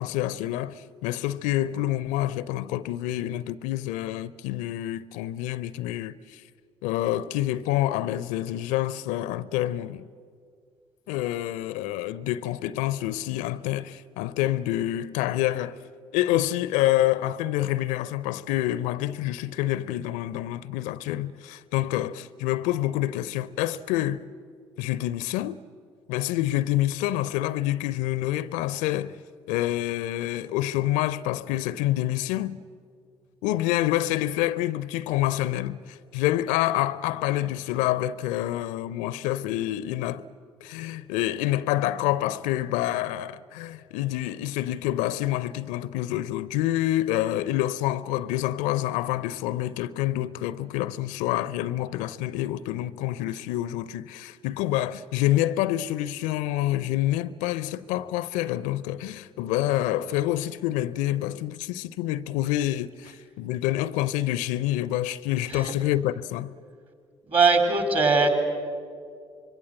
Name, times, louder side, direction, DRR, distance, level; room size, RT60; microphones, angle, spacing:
voice 1, 0.0-6.4 6.8-10.0 11.1-15.8 16.1-24.2 24.8-25.6 26.1-29.2 29.5-32.6 33.4-40.2 40.6-66.5, left 14 dB, 65° left, 0.5 m, -27 dB
voice 2, 67.3-68.3, right 4 dB, 40° right, 4.0 m, -21 dB
25.5 x 22.5 x 7.7 m
figure-of-eight pair, 45°, 14 cm